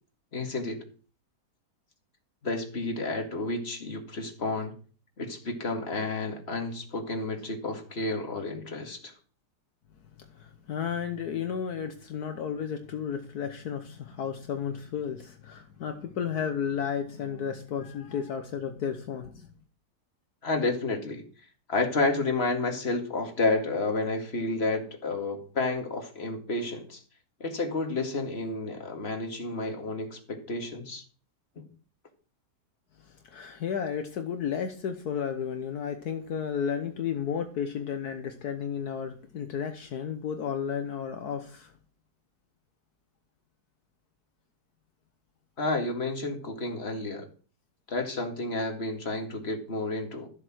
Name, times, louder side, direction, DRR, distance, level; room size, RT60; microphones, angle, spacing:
voice 1, 0.3-0.8 2.4-4.7 5.2-9.1 20.4-21.2 21.7-27.0 27.4-31.0 31.6-31.7 45.6-47.3 47.9-50.3, left 2 dB, 40° left, 2.3 m, -30 dB
voice 2, 10.3-19.5 33.0-41.7, left 7 dB, 70° left, 1.5 m, -33 dB
13.5 x 7.9 x 6.2 m
omnidirectional pair, 1.7 m